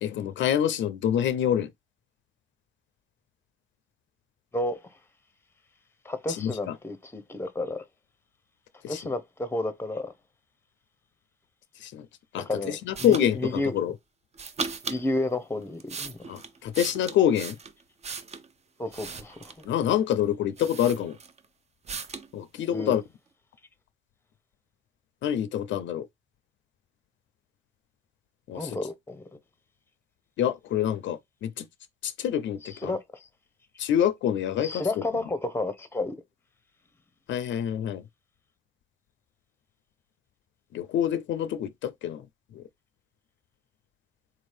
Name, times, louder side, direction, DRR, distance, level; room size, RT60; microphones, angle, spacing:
voice 1, 0.0-1.7 6.3-6.7 8.8-9.0 11.8-12.1 12.3-13.9 16.3-17.6 19.7-21.2 22.3-23.0 25.2-26.1 28.5-28.8 30.4-31.7 32.0-32.9 33.8-35.0 37.3-38.0 40.7-42.2 42.5-42.6, left 10 dB, 70° left, 0.4 m, -26 dB
voice 2, 6.0-7.8 8.9-10.1 12.4-13.7 14.9-16.2 18.8-19.5 22.7-22.9 28.5-29.4 32.8-33.0 34.6-36.2, left 2 dB, 10° left, 0.7 m, -31 dB
sound 1, 12.9-13.3 14.3-15.0 15.6-18.5 18.9-19.7 20.2-20.3 20.6-21.4 21.9-22.3, right 5 dB, 35° right, 0.5 m, -37 dB
3.9 x 2.6 x 3.2 m
cardioid pair, 90°, 20 cm